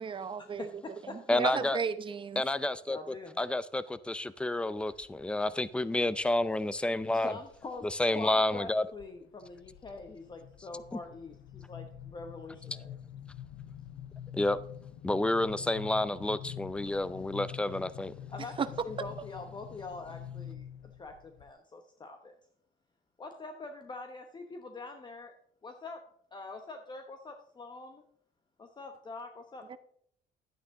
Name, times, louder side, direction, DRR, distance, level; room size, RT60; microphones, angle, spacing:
voice 1, 0.0-0.7 1.1-2.4 18.6-18.7 29.7-29.8, right 6 dB, 30° right, 0.7 m, -34 dB
voice 2, 0.6-1.2 2.9-3.4 7.1-12.9 18.3-20.7 21.0-22.3 23.2-25.3 25.6-26.0 26.3-28.0 28.6-29.8, left 3 dB, 25° left, 1.0 m, -44 dB
voice 3, 1.3-1.8 2.4-3.0 3.4-7.3 7.8-8.8 14.3-14.6 15.0-18.1, left 2 dB, 5° left, 0.5 m, -29 dB
sound 1, 4.8-5.3 5.8-6.3 7.0-7.9 8.2-8.6 8.9-21.5, left 10 dB, 75° left, 0.6 m, -46 dB
11.5 x 9.3 x 3.7 m
cardioid pair, 110°, 17 cm